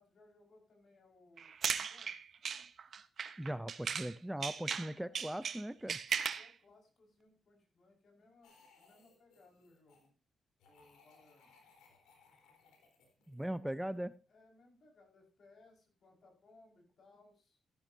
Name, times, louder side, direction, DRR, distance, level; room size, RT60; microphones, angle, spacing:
voice 1, 0.0-2.1 5.0-5.4 6.1-8.5 8.8-10.1 10.7-11.7 13.4-14.0 14.3-17.6, left 2 dB, 60° left, 1 dB, 5.3 m, -65 dB
sound 1, 1.4-4.1 4.4-6.5, right 6 dB, 55° right, 0.9 m, -37 dB
voice 2, 3.4-6.0 13.3-14.1, right 1 dB, 5° right, 15 dB, 0.5 m, -39 dB
sound 2, 8.4-10.1 10.6-14.1, left 4 dB, 90° left, 3.8 m, -66 dB
13.5 x 12.0 x 2.7 m, 0.34 s
cardioid pair, 70°, 0 cm